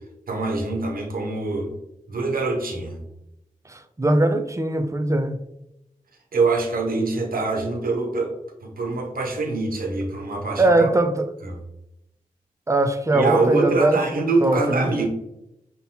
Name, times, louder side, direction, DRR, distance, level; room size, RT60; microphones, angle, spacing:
voice 1, 0.3-1.7 2.1-3.0 6.3-8.3 8.6-10.9 13.1-15.1, right 3 dB, 85° right, 0.7 m, -24 dB
voice 2, 3.7-5.4 10.6-11.3 12.7-14.0 14.4-14.9, right 2 dB, 20° right, 0.4 m, -21 dB
5.5 x 2.2 x 2.7 m
cardioid pair, 40°, 14 cm